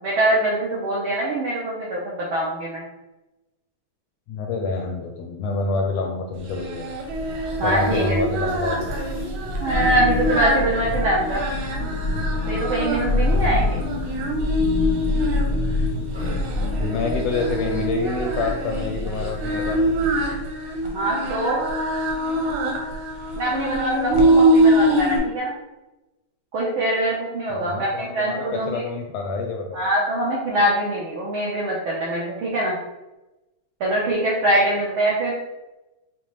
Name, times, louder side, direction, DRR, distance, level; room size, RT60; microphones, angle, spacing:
voice 1, 0.0-2.8 7.6-8.2 9.6-11.4 12.5-13.8 20.8-21.6 23.4-25.5 26.5-28.8 29.7-32.7 33.8-35.3, right 1 dB, 70° right, -5 dB, 1.2 m, -23 dB
voice 2, 4.3-6.9 7.6-8.9 13.3-13.6 16.5-19.8 27.5-29.8, left 3 dB, 80° left, 2 dB, 1.5 m, -27 dB
Singing, 6.4-25.2, right 1 dB, 90° right, 2.4 m, -24 dB
Thunder, 6.9-20.5, left 1 dB, 40° left, 0.3 m, -27 dB
7.1 x 2.4 x 3.0 m, 1.0 s
omnidirectional pair, 3.3 m